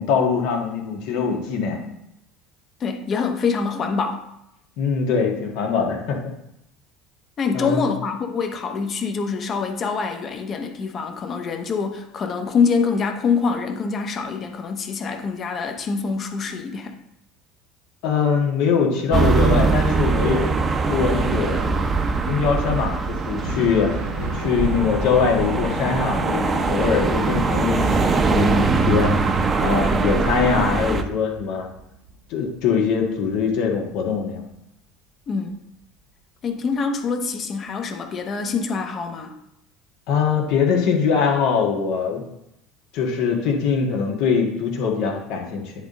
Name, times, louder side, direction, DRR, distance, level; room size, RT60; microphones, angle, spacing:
voice 1, 0.0-1.8 4.8-6.2 7.5-7.9 18.0-20.5 20.9-21.6 22.3-23.9 24.3-29.2 29.6-31.7 32.3-34.4 40.1-42.2 42.9-45.7, left 6 dB, 60° left, 1 dB, 1.7 m, -22 dB
voice 2, 2.8-4.2 7.4-17.0 35.3-35.6 36.4-39.3, left 5 dB, 40° left, 5 dB, 1.2 m, -25 dB
sound 1, 19.1-31.0, right 4 dB, 30° right, 0.9 m, -22 dB
Thunder, 23.4-32.6 33.0-34.2 35.8-35.9 36.7-36.8, equal, 90° right, 1.9 m, -35 dB
10.0 x 4.0 x 3.8 m, 0.82 s
figure-of-eight pair, 70°, 0 cm